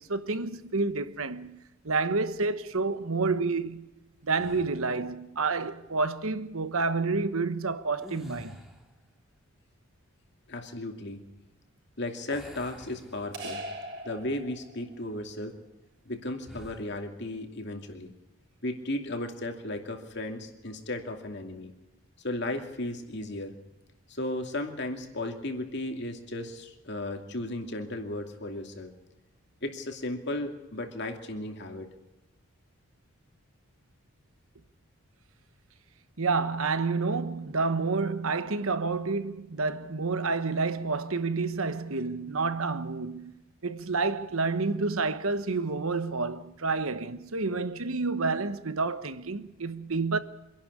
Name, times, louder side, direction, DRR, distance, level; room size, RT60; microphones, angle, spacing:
voice 1, 0.0-3.9 4.2-8.6 36.2-50.2, right 3 dB, 70° right, 1.1 m, -29 dB
sound 1, 4.3-5.0 7.9-9.0 12.3-13.7 14.2-14.4 16.4-16.9, equal, ahead, 2.1 m, -47 dB
voice 2, 10.5-11.2 12.0-13.6 14.0-15.5 16.1-18.1 18.6-21.7 22.2-23.5 24.1-28.9 29.6-31.9, left 1 dB, 50° left, 2.6 m, -35 dB
sound 2, 13.3-15.0, right 1 dB, 45° right, 4.8 m, -40 dB
25.5 x 11.5 x 9.8 m
head